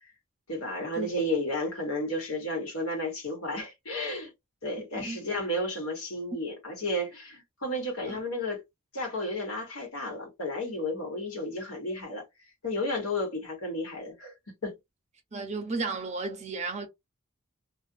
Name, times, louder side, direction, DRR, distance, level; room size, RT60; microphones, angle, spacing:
voice 1, 0.5-4.3 4.6-8.6 8.9-12.2 12.6-14.3 14.6-14.7, left 1 dB, 90° left, 1.3 m, -32 dB
voice 2, 15.3-16.9, right 3 dB, 30° right, 0.6 m, -33 dB
2.5 x 2.3 x 2.5 m
head